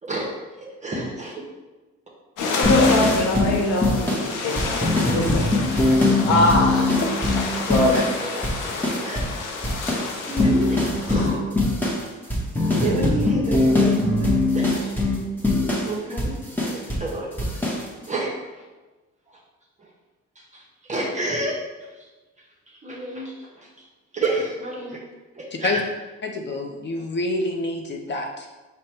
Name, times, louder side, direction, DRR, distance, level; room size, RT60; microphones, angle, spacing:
voice 1, 0.6-1.4 7.9-8.3 9.0-9.2 10.2-11.6 12.2-14.9 15.8-16.3 16.6-17.7 18.1-18.6 19.3-19.4 19.8-19.9 20.3-21.5 21.8-22.1 22.4-23.9 24.1-25.0 25.3-25.8, right 1 dB, 25° right, -3 dB, 0.8 m, -30 dB
sound 1, 2.4-11.3, left 3 dB, 90° left, 0.7 m, -29 dB
voice 2, 2.5-6.9 7.7-8.0, left 2 dB, 75° left, 0 dB, 1.1 m, -23 dB
sound 2, 2.6-8.2 8.4-9.4 9.6-17.1 17.4-17.8, left 2 dB, 5° left, 0.9 m, -22 dB
voice 3, 26.2-28.5, left 2 dB, 35° left, 2 dB, 0.6 m, -27 dB
5.1 x 2.2 x 4.3 m, 1.2 s
cardioid pair, 90°, 30 cm